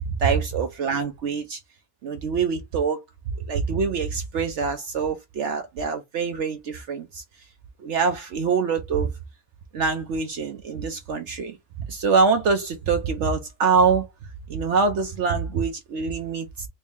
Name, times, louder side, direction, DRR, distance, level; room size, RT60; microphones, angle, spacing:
voice 1, 0.2-1.6 2.0-3.0 3.5-7.2 7.8-9.1 9.7-11.6 11.9-14.1 14.5-16.7, right 5 dB, 65° right, 0.8 m, -24 dB
3.1 x 2.6 x 3.4 m
omnidirectional pair, 1.6 m